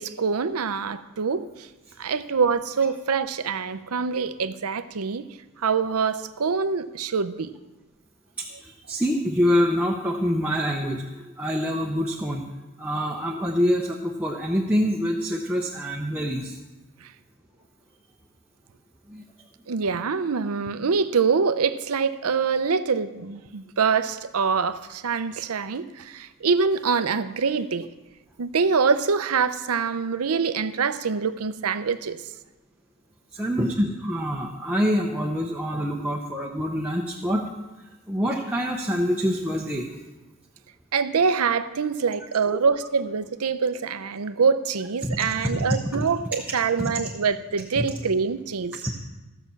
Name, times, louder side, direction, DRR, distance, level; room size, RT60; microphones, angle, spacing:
voice 1, 0.0-1.5 2.0-5.3 5.6-7.5 19.7-27.9 28.4-32.2 40.9-48.8, right 5 dB, 75° right, 12 dB, 0.6 m, -25 dB
voice 2, 8.4-12.5 12.8-16.6 19.1-19.2 33.3-37.4 38.1-39.9 45.0-46.0 46.8-46.9 47.8-47.9 48.8-48.9, equal, 5° right, -2 dB, 0.8 m, -26 dB
15.0 x 5.9 x 7.0 m, 1.1 s
head